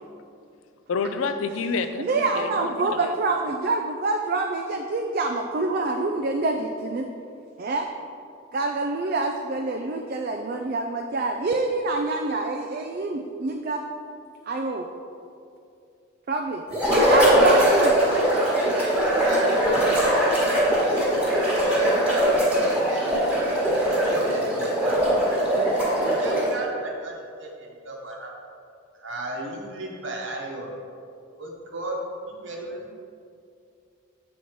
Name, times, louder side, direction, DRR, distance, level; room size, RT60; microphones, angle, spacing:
voice 1, 0.9-3.1, left 4 dB, 75° left, 9 dB, 0.4 m, -29 dB
voice 2, 2.0-7.1 7.6-7.9 8.5-13.8 14.5-14.9 16.3-16.6 17.0-18.0, right 3 dB, 45° right, 3 dB, 0.3 m, -26 dB
sound 1, 16.7-26.6, right 1 dB, 5° right, 1.4 m, -21 dB
voice 3, 18.9-21.2 21.7-23.1 23.7-25.0 26.0-28.3 29.0-30.7 31.4-32.0 32.3-33.0, right 2 dB, 60° right, -1 dB, 1.1 m, -35 dB
7.4 x 4.2 x 4.6 m, 2.4 s
head